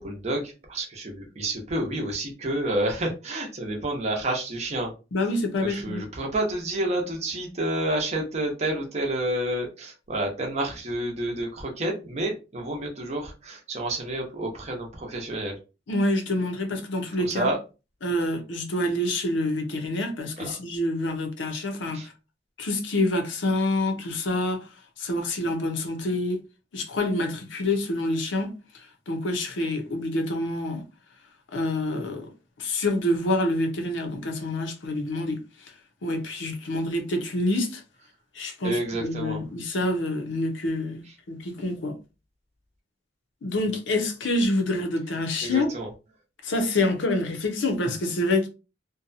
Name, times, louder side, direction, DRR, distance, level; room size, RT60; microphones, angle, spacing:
voice 1, 0.0-4.9 5.6-15.5 17.2-17.6 20.4-20.5 21.9-22.1 38.6-39.4 45.4-45.9, right 1 dB, 35° right, 0.7 m, -29 dB
voice 2, 5.1-6.0 15.9-17.5 18.0-22.1 22.6-24.7 25.0-26.4 26.7-30.8 31.5-32.3 32.6-35.7 36.0-37.8 38.3-42.0 43.4-45.7 46.4-48.5, left 1 dB, 70° left, 0.6 m, -27 dB
2.7 x 2.2 x 2.5 m
head